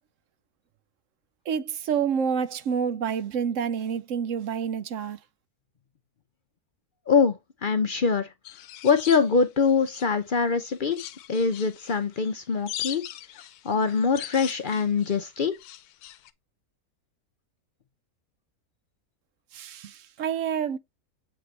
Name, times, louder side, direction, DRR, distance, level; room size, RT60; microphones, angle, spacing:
voice 1, 1.5-5.2 19.5-20.8, right 7 dB, 65° right, 0.9 m, -28 dB
voice 2, 7.1-8.3 8.8-11.0 11.3-13.0 13.6-15.6, left 5 dB, 50° left, 0.6 m, -23 dB
sound 1, 8.4-10.3 10.6-16.3, left 13 dB, 85° left, 1.1 m, -41 dB
7.6 x 4.0 x 3.2 m
omnidirectional pair, 1.6 m